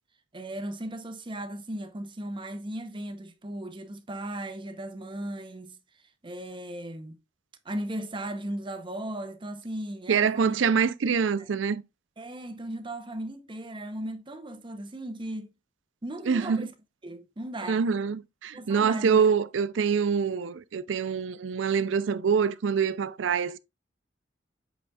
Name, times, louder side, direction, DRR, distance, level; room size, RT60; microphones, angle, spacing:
voice 1, 0.3-5.8 6.2-7.2 7.6-10.6 11.0-11.1 11.4-11.5 12.2-15.5 16.0-16.7 17.0-17.9 18.5-19.2, right 1 dB, 25° right, 0.7 m, -37 dB
voice 2, 10.1-11.8 16.3-16.7 17.7-23.6, right 6 dB, 80° right, 0.5 m, -25 dB
8.2 x 5.2 x 2.3 m
head